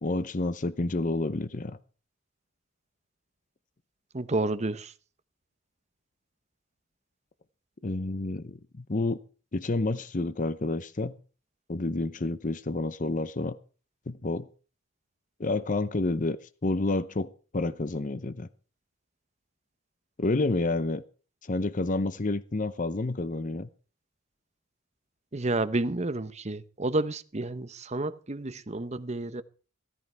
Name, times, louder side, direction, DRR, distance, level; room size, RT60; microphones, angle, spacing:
voice 1, 0.0-1.8 7.8-9.2 9.5-11.2 11.7-13.6 14.1-14.5 15.4-16.4 16.6-18.5 20.2-21.0 21.5-23.7, left 2 dB, 40° left, 0.7 m, -29 dB
voice 2, 4.1-4.9 25.3-29.4, right 2 dB, 30° right, 0.9 m, -30 dB
15.5 x 14.0 x 4.6 m
head